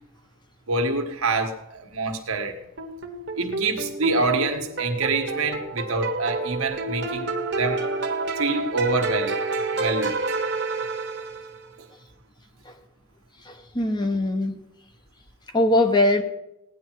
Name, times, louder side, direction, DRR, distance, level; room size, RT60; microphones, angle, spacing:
voice 1, 0.7-2.6 3.4-7.8 8.4-9.4 9.7-10.2, right 3 dB, 75° right, 4 dB, 1.6 m, -26 dB
sound 1, 2.8-11.7, right 3 dB, 55° right, 1.4 m, -29 dB
voice 2, 13.4-14.6 15.5-16.2, left 1 dB, 20° left, 6 dB, 1.0 m, -21 dB
17.0 x 10.0 x 4.7 m, 0.88 s
head